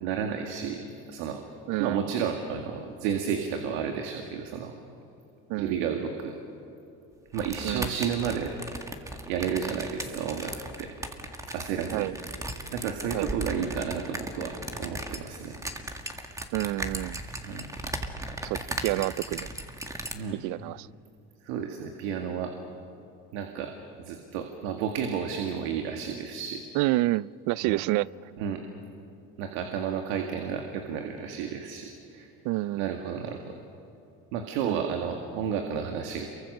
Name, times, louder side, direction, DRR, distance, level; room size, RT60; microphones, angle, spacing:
voice 1, 0.0-1.4 1.8-4.7 5.6-6.3 7.3-8.5 9.3-10.5 10.8-10.9 11.5-12.1 12.7-15.6 17.4-17.7 20.1-20.4 21.4-22.5 23.3-23.7 24.0-26.6 27.6-27.8 28.4-28.6 29.4-32.3 32.8-33.6 34.3-36.3, right 7 dB, 85° right, 2.1 m, -32 dB
voice 2, 1.7-2.1 5.5-5.9 7.6-7.9 11.9-12.2 13.1-13.4 16.5-17.2 18.4-19.5 20.4-20.9 26.7-28.1 32.4-32.9 34.6-34.8, right 18 dB, 70° right, 0.5 m, -29 dB
sound 1, 7.3-20.1, right 1 dB, 10° right, 2.0 m, -37 dB
28.5 x 23.5 x 6.7 m
supercardioid pair, 110°, 31 cm